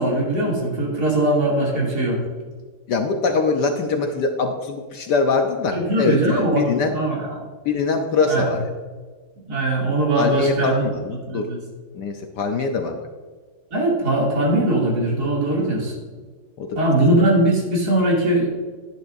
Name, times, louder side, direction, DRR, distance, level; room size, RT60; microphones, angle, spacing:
voice 1, 0.0-2.2 5.7-7.4 8.3-8.5 9.5-10.8 11.3-11.6 13.7-15.9 16.7-18.5, right 1 dB, 45° right, -3 dB, 3.0 m, -20 dB
voice 2, 2.9-7.0 7.6-8.7 10.1-11.5 11.9-13.1 15.6-15.7 16.6-16.8, left 4 dB, 65° left, 4 dB, 1.1 m, -23 dB
11.0 x 10.5 x 2.6 m, 1.5 s
omnidirectional pair, 2.4 m